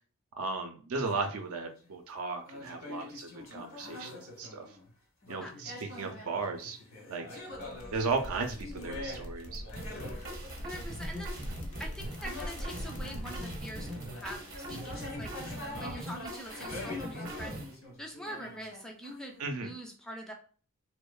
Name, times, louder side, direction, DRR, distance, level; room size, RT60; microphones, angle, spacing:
voice 1, 0.4-4.7 5.3-6.8 7.1-7.3 7.9-9.6 19.4-19.7, right 4 dB, 90° right, 5 dB, 0.5 m, -35 dB
sound 1, 1.0-1.9 2.5-4.9 5.2-19.6, left 2 dB, 75° left, 0.9 m, -45 dB
sound 2, 7.5-16.8, equal, 90° left, 0.5 m, -43 dB
sound 3, 9.8-17.7, right 1 dB, 45° right, 0.7 m, -42 dB
voice 2, 10.6-11.5 11.8-15.4 15.8-17.6 18.0-20.3, equal, 5° left, 2 dB, 0.3 m, -44 dB
2.8 x 2.0 x 2.3 m, 0.40 s
head